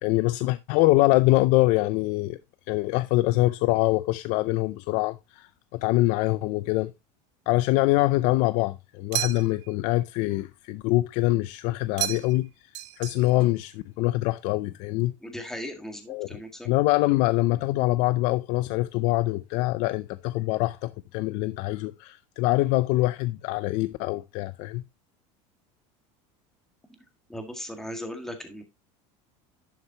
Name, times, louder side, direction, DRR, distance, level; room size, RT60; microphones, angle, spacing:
voice 1, 0.0-2.4 2.7-6.9 7.5-12.5 13.0-15.1 16.1-24.8, left 19 dB, 55° left, 0.5 m, -24 dB
sound 1, 9.1-9.7 12.0-12.5 12.7-13.5, right 17 dB, 75° right, 0.9 m, -32 dB
voice 2, 15.2-16.7 27.3-28.6, equal, 5° left, 1.8 m, -37 dB
11.0 x 6.6 x 2.9 m
cardioid pair, 155°, 15 cm